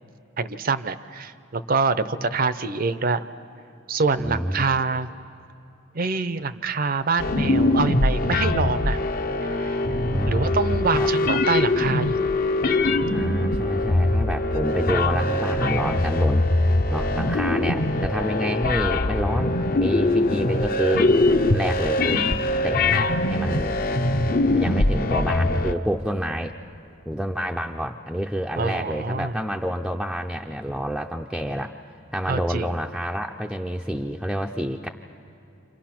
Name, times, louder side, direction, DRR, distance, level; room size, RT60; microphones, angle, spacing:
voice 1, 0.4-3.2 3.9-5.1 5.9-9.0 9.6-9.8 10.3-12.2 28.6-29.3 32.3-32.7, right 4 dB, 45° right, 14 dB, 0.6 m, -25 dB
voice 2, 4.2-4.8 10.1-10.6 10.9-11.1 13.1-21.1 21.5-22.2 22.6-23.8 24.5-26.6 27.1-31.7 32.1-34.9, equal, ahead, 1 dB, 0.5 m, -28 dB
sound 1, 7.2-25.7, left 2 dB, 45° left, 0.7 m, -22 dB
29.0 x 27.0 x 5.9 m, 2.8 s
head